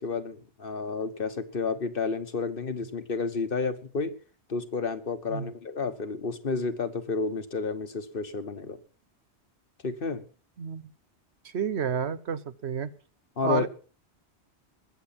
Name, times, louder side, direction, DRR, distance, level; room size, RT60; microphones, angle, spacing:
voice 1, 0.0-4.1 4.5-8.8 9.8-10.2 13.4-13.7, left 4 dB, 55° left, 10 dB, 1.4 m, -31 dB
voice 2, 10.6-10.9 11.5-12.9 13.4-13.7, right 7 dB, 75° right, 14 dB, 1.2 m, -30 dB
21.0 x 7.9 x 5.8 m, 0.39 s
omnidirectional pair, 1.1 m